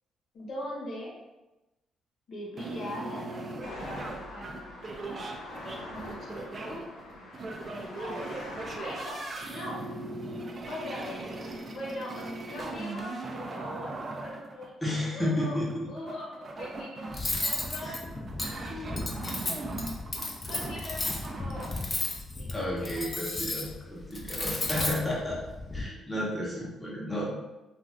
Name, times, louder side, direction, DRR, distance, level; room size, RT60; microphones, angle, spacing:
voice 1, 0.3-1.1 2.3-4.0 4.3-4.7 5.0-5.3 5.9-6.8 7.7-8.3 8.6-9.8 10.7-11.3 11.6-14.7 15.1-15.6 15.9-18.0 18.5-18.6 20.4-21.8 22.4-23.0 24.7-24.9 25.2-25.4 25.7-26.2, left 1 dB, 65° left, -4 dB, 1.0 m, -41 dB
sound 1, 2.6-21.7, right 2 dB, 40° right, 0.4 m, -39 dB
sound 2, 3.6-9.9, left 1 dB, 90° left, 0.7 m, -44 dB
voice 2, 14.8-15.9 17.8-18.0 22.5-25.4 25.7-27.3, left 1 dB, 10° left, -6 dB, 0.9 m, -32 dB
Cutlery silverware, 17.1-25.8, left 2 dB, 30° left, 0.5 m, -34 dB
2.5 x 2.4 x 3.3 m, 1.0 s
cardioid pair, 90°, 0 cm